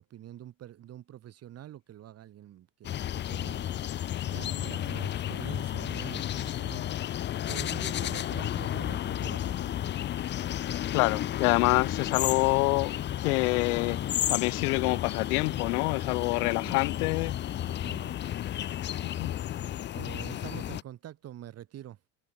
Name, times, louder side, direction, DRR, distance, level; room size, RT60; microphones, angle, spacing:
voice 1, 0.0-7.2 7.5-9.8 16.4-16.8 17.7-18.2 19.9-22.0, right 12 dB, 35° right, 6.2 m, -46 dB
sound 1, 2.8-20.8, left 11 dB, 25° left, 0.8 m, -32 dB
voice 2, 10.9-14.0 14.3-17.4 19.2-19.3, left 26 dB, 85° left, 1.5 m, -26 dB
cardioid pair, 155°, 42 cm